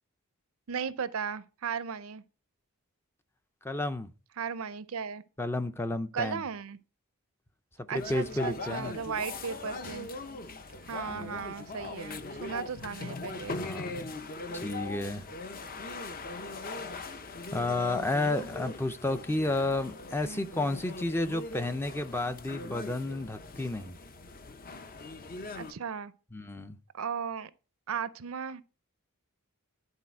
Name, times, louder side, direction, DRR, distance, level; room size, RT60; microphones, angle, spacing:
voice 1, 0.7-2.2 4.4-5.2 6.1-6.8 7.9-10.1 10.9-13.7 20.1-20.5 25.5-26.1 26.9-27.5 27.9-28.6, right 6 dB, 65° right, 0.5 m, -36 dB
voice 2, 3.6-4.1 5.4-6.4 7.9-8.9 11.1-11.5 13.4-14.1 14.5-15.2 17.5-24.0 26.3-26.8, left 2 dB, 10° left, 0.5 m, -32 dB
sound 1, 7.9-25.7, left 3 dB, 40° left, 0.7 m, -40 dB
11.0 x 4.1 x 4.4 m
head